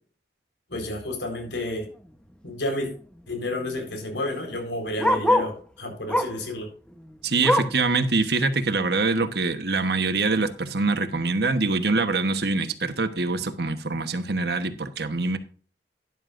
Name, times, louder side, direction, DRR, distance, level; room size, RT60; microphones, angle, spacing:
voice 1, 0.7-1.9 2.4-2.9 3.3-6.7, left 1 dB, 80° left, 3 dB, 4.2 m, -31 dB
Bark, 1.9-2.1 2.5-2.6 2.8-5.6 6.1-6.5 6.9-7.9 8.3-8.4 8.8-8.9 9.6-9.7, left 1 dB, 5° left, 0.9 m, -26 dB
voice 2, 7.2-15.4, right 3 dB, 65° right, 9 dB, 1.2 m, -24 dB
13.0 x 11.0 x 2.6 m, 0.40 s
head